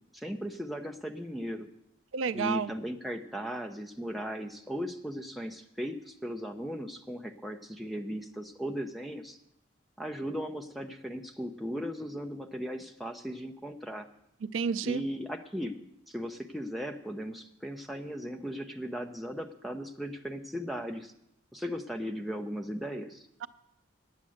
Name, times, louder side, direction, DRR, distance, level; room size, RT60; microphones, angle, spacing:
voice 1, 0.1-1.7 2.3-9.4 10.0-14.1 14.8-15.7 16.1-21.1 21.5-23.3, equal, ahead, 2 dB, 0.7 m, -37 dB
voice 2, 2.1-2.7 14.5-15.0, right 6 dB, 80° right, 16 dB, 0.4 m, -30 dB
9.8 x 8.6 x 7.8 m, 0.81 s
head